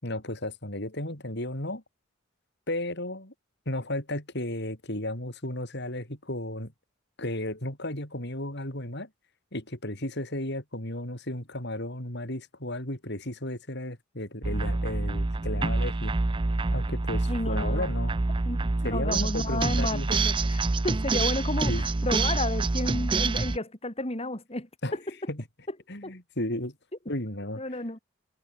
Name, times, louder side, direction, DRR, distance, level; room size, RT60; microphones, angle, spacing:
voice 1, 0.0-1.8 2.7-3.3 3.7-6.7 7.2-9.1 9.5-16.1 16.7-18.1 18.8-20.1 21.7-21.9 24.8-25.0 25.3-25.4 25.9-26.8 27.1-27.8, left 1 dB, 55° left, 7.1 m, -34 dB
sound 1, 14.4-23.6, right 3 dB, 25° right, 0.5 m, -27 dB
voice 2, 17.3-17.9 18.4-24.7 26.0-26.1 27.6-28.0, left 2 dB, 30° left, 3.3 m, -32 dB
head